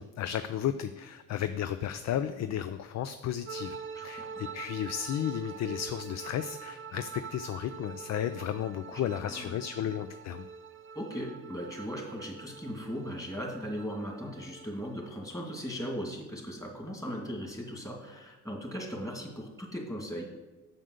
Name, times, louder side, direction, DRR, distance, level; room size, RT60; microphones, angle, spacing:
voice 1, 0.0-10.4, left 10 dB, 60° left, 11 dB, 0.5 m, -34 dB
sound 1, 3.5-15.1, right 6 dB, 45° right, 0.5 m, -45 dB
voice 2, 3.9-4.4 8.9-9.6 10.9-20.3, equal, 10° left, 0 dB, 2.4 m, -38 dB
7.3 x 7.0 x 6.6 m, 1.2 s
cardioid pair, 90°, 30 cm